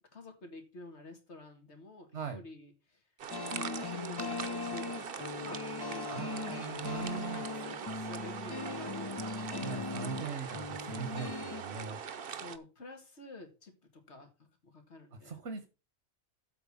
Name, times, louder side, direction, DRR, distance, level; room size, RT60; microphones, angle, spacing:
voice 1, 0.1-3.0 3.4-6.1 7.0-9.2 9.5-9.6 10.0-10.4 12.3-14.3 14.6-15.4, left 2 dB, 80° left, 5 dB, 2.3 m, -50 dB
voice 2, 2.1-2.4 6.1-7.4 9.6-12.0 15.1-15.7, right 6 dB, 80° right, 9 dB, 1.5 m, -40 dB
sound 1, 3.2-12.6, right 7 dB, 60° right, 1.0 m, -42 dB
sound 2, 3.3-11.6, left 4 dB, 35° left, 0.4 m, -40 dB
8.0 x 4.6 x 7.3 m, 0.30 s
omnidirectional pair, 1.1 m